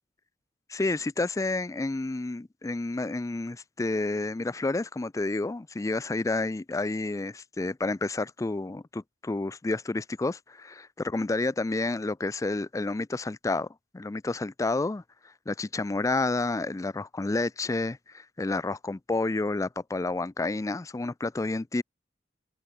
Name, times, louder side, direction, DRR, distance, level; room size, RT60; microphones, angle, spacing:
voice 1, 0.7-13.7 13.9-15.0 15.5-21.8, left 2 dB, 20° left, 0.4 m, -30 dB
open air
head